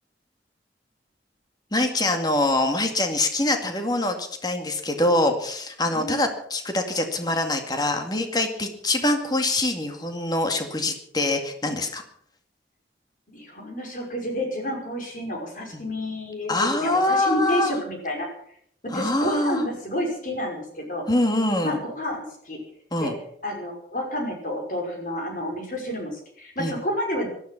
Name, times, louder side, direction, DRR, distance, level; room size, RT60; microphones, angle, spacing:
voice 1, 1.7-12.0 16.5-17.7 18.9-19.6 21.1-21.8 22.9-23.2 26.6-26.7, left 2 dB, 25° left, 5 dB, 2.1 m, -24 dB
voice 2, 13.3-18.3 18.9-21.1 21.6-22.6 23.0-23.1 23.4-27.3, left 1 dB, 50° left, 1 dB, 5.5 m, -29 dB
18.0 x 13.0 x 5.9 m, 0.67 s
head